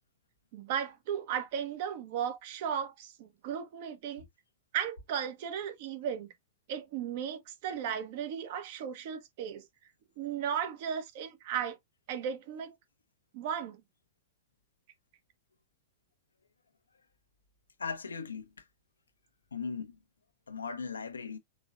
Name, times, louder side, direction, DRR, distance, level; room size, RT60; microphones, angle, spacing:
voice 1, 0.5-4.2 4.7-6.3 6.7-9.6 10.2-11.8 12.1-12.7 13.3-13.8, right 8 dB, 55° right, 1.3 m, -35 dB
voice 2, 17.8-18.5 19.5-19.9 20.5-21.4, left 5 dB, 80° left, 0.9 m, -38 dB
5.3 x 3.9 x 2.5 m
figure-of-eight pair, 100°, 0 cm